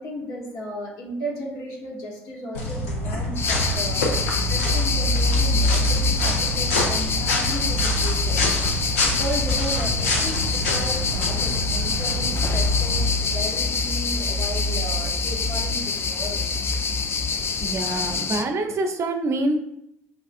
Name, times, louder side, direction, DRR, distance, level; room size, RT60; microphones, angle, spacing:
voice 1, 0.0-8.4 9.0-16.4, equal, 65° left, -2 dB, 1.4 m, -34 dB
sound 1, 2.5-13.1, left 1 dB, 80° left, 0.8 m, -27 dB
sound 2, 2.9-17.3, left 1 dB, 5° right, 0.9 m, -28 dB
sound 3, 3.4-18.4, left 5 dB, 35° left, 0.4 m, -27 dB
voice 2, 17.6-19.6, right 2 dB, 40° right, 5 dB, 0.6 m, -25 dB
6.0 x 2.4 x 2.5 m, 0.79 s
hypercardioid pair, 60°, 7 cm